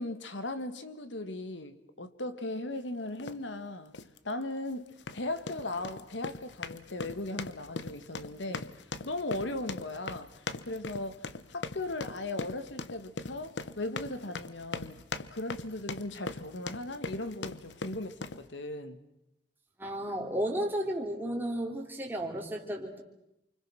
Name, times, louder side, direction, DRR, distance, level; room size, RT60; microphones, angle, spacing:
voice 1, 0.0-4.0 4.2-8.7 9.0-15.0 15.3-19.0, left 2 dB, 90° left, 1.7 m, -38 dB
sound 1, 3.2-3.4 3.9-4.2 4.9-18.4, left 3 dB, 70° left, 1.0 m, -40 dB
voice 2, 19.8-23.0, right 1 dB, 10° right, 3.4 m, -33 dB
29.0 x 25.0 x 6.3 m
head